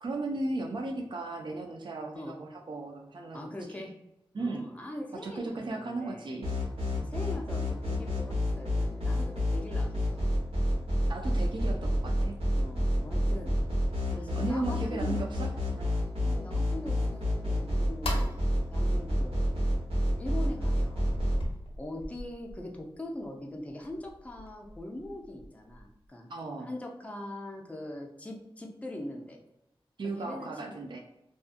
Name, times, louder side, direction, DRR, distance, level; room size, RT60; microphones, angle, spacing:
voice 1, 0.0-3.8 4.3-4.7 5.1-7.1 11.1-12.4 13.0-13.1 14.1-16.1 26.3-26.7 30.0-31.0, right 2 dB, 55° right, 1 dB, 0.4 m, -36 dB
voice 2, 3.3-3.9 4.4-6.4 7.1-10.2 12.6-13.5 14.1-15.2 16.2-18.4 18.7-19.6 20.2-21.2 21.8-26.3 26.7-29.4 30.2-30.8, left 1 dB, 15° left, 1 dB, 0.4 m, -42 dB
sound 1, 6.4-21.4, equal, 80° right, 0.9 m, -28 dB
sound 2, 13.6-13.9 14.4-14.5 15.0-15.1 15.6-16.3 16.7-16.8 17.2-17.3 17.8-18.9 19.5-19.6 20.0-20.1 20.6-20.7 21.1-26.1, left 1 dB, 75° left, 0.7 m, -42 dB
2.5 x 2.3 x 2.5 m, 0.87 s
wide cardioid pair, 75°, 10 cm